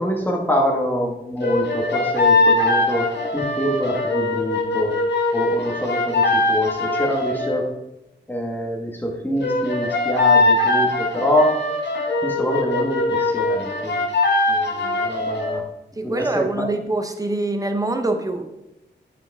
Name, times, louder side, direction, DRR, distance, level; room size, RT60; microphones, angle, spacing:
voice 1, 0.0-4.9 5.3-7.7 8.3-11.6 12.2-14.0 14.5-15.6 16.0-16.7, equal, 10° left, 0 dB, 1.6 m, -25 dB
sound 1, 1.4-7.6 9.4-15.6, left 2 dB, 70° left, 1.5 m, -21 dB
voice 2, 16.0-18.5, right 2 dB, 20° right, 6 dB, 0.9 m, -24 dB
9.1 x 5.1 x 3.6 m, 0.93 s
cardioid pair, 75°, 19 cm